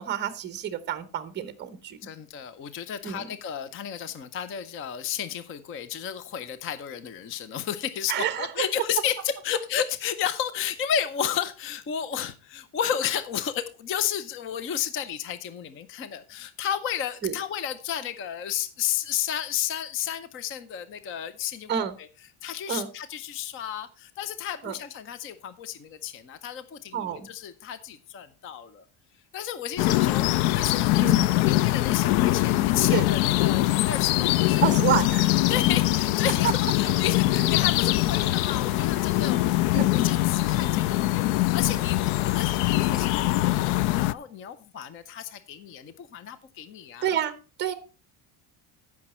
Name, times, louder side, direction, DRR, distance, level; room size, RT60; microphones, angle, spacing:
voice 1, 0.0-2.0 3.0-3.3 8.1-8.7 17.2-17.3 21.7-21.9 22.7-22.9 24.6-24.7 26.9-27.3 31.0-31.3 32.9-33.0 34.6-35.4 36.4-36.5 39.7-39.9 47.0-47.3 47.6-47.7, right 10 dB, 20° right, 12 dB, 0.9 m, -28 dB
voice 2, 2.0-22.1 22.4-28.9 29.3-34.6 35.5-47.1, left 9 dB, 25° left, 13 dB, 0.5 m, -32 dB
sound 1, 29.8-44.1, left 17 dB, 80° left, 0.6 m, -23 dB
15.0 x 6.0 x 4.2 m, 0.32 s
cardioid pair, 180°, 49 cm